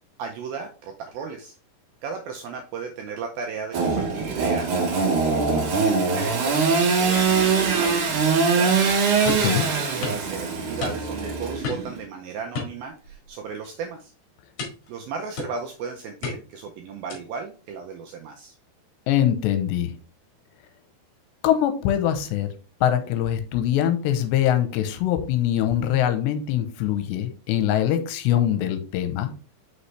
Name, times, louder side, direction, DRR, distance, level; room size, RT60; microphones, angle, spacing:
voice 1, 0.2-1.6 2.0-8.7 9.5-14.1 14.9-18.6, right 5 dB, 80° right, 3 dB, 2.1 m, -35 dB
Engine / Sawing, 3.7-12.0, right 5 dB, 65° right, 2.2 m, -22 dB
voice 2, 9.2-9.7 19.1-19.9 21.4-22.5 22.8-29.3, left 11 dB, 80° left, 8 dB, 2.9 m, -23 dB
sound 1, 9.3-9.5 10.0-10.3 10.8-11.2 11.6-12.0 12.5-13.3 13.6-13.9 14.6-14.9 15.4-15.8 16.2-16.6 17.1-17.4, left 4 dB, 60° left, 3.0 m, -33 dB
6.1 x 5.5 x 3.2 m, 0.36 s
omnidirectional pair, 5.0 m